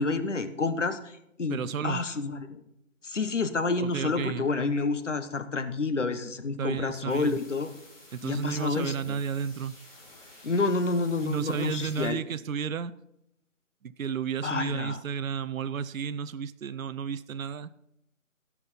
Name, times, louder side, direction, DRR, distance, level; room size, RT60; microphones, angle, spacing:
voice 1, 0.0-2.6 3.0-7.7 8.2-9.2 10.4-12.2 14.4-15.0, left 3 dB, 60° left, 10 dB, 1.2 m, -29 dB
voice 2, 1.5-2.0 3.8-4.5 6.6-7.4 8.1-9.7 11.2-12.9 13.8-17.7, right 7 dB, 75° right, 14 dB, 0.6 m, -32 dB
sound 1, 7.1-12.1, left 1 dB, 25° left, 3.5 m, -52 dB
15.0 x 5.8 x 5.8 m, 0.82 s
figure-of-eight pair, 175°, 40 cm